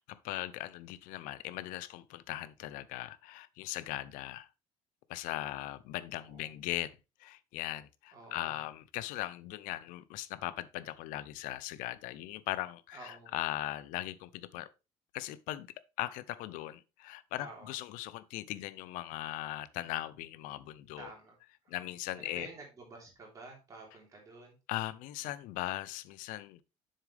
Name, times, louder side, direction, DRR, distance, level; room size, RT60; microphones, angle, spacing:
voice 1, 0.1-4.5 5.1-14.7 15.1-15.7 16.0-21.1 21.7-22.5 24.7-26.6, left 15 dB, 80° left, 0.6 m, -39 dB
voice 2, 6.2-6.5 8.1-8.6 12.9-13.3 17.4-17.7 21.0-21.3 21.6-21.8 22.2-24.6, right 3 dB, 25° right, 3.2 m, -50 dB
7.5 x 6.5 x 3.3 m
cardioid pair, 170°, 13 cm